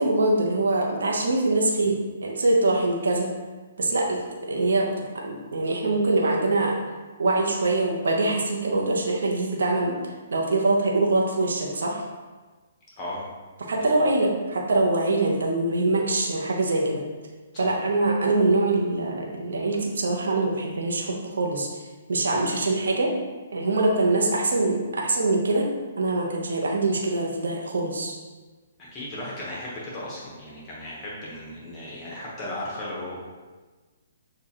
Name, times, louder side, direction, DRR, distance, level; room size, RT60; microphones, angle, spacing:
voice 1, 0.0-3.3 3.8-4.9 5.2-6.7 7.2-12.0 13.7-17.0 17.6-21.8 22.1-23.1 23.5-25.7 26.0-28.2, right 2 dB, 75° right, -1 dB, 0.8 m, -24 dB
voice 2, 13.0-13.3 13.7-14.0 17.5-17.7 28.8-33.2, left 1 dB, 25° left, -6 dB, 1.0 m, -36 dB
6.4 x 2.4 x 2.9 m, 1.3 s
hypercardioid pair, 140°, 0 cm